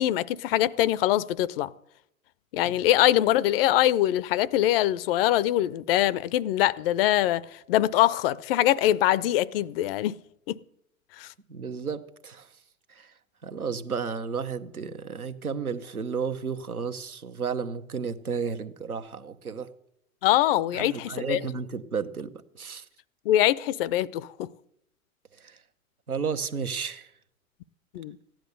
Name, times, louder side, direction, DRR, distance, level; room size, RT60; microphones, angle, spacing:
voice 1, 0.0-1.7 2.5-10.1 10.5-10.6 11.2-11.3 20.2-21.4 23.3-24.5 27.9-28.2, left 13 dB, 45° left, 0.6 m, -23 dB
voice 2, 11.5-12.5 12.9-13.1 13.4-19.7 20.7-22.9 25.4-25.6 26.1-27.1, right 6 dB, 85° right, 1.1 m, -33 dB
15.0 x 10.5 x 6.6 m
figure-of-eight pair, 90°, 42 cm